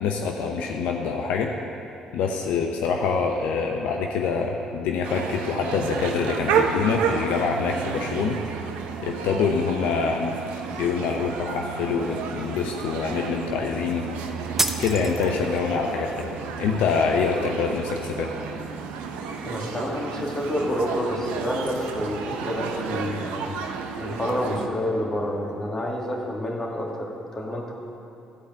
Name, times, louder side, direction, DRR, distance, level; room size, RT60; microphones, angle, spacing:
voice 1, 0.0-1.5 2.1-8.4 9.0-10.3 10.8-14.1 14.8-16.3 16.6-18.3, left 5 dB, 75° left, 2 dB, 0.7 m, -25 dB
sound 1, 5.0-24.7, right 6 dB, 80° right, 0.7 m, -31 dB
sound 2, 14.6-15.6, right 2 dB, 15° right, 0.7 m, -27 dB
voice 2, 19.4-23.5 24.0-27.7, left 1 dB, 25° left, -2 dB, 2.4 m, -28 dB
12.5 x 4.9 x 7.9 m, 2.6 s
hypercardioid pair, 55°, 3 cm